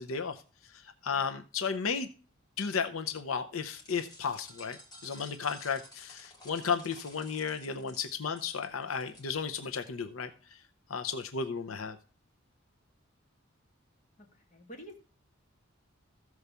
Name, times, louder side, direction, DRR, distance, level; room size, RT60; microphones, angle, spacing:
voice 1, 0.0-2.1 2.6-10.6 10.9-12.0, left 6 dB, 85° left, 7 dB, 0.7 m, -34 dB
sound 1, 3.8-9.8, left 2 dB, 20° left, 3.1 m, -53 dB
voice 2, 14.2-15.0, equal, 35° left, 2 dB, 2.1 m, -49 dB
14.0 x 4.8 x 6.8 m, 0.37 s
head